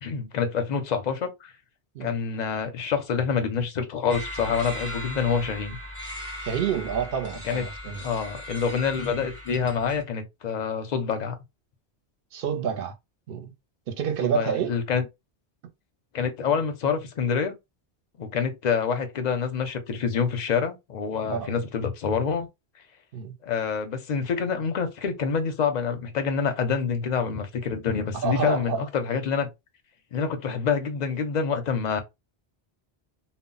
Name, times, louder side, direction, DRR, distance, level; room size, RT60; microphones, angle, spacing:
voice 1, 0.0-1.5 2.0-5.8 7.4-7.6 8.0-11.4 14.2-15.0 16.1-17.5 18.2-22.5 23.4-29.5 30.1-32.0, left 6 dB, 50° left, 0.6 m, -27 dB
sound 1, 4.1-10.0, left 1 dB, 15° right, 0.8 m, -38 dB
voice 2, 6.4-8.0 12.3-12.9 13.3-13.5 13.9-14.8 21.3-21.5 23.1-23.3 28.2-28.9, right 8 dB, 65° right, 0.7 m, -28 dB
2.1 x 2.0 x 3.8 m
omnidirectional pair, 1.1 m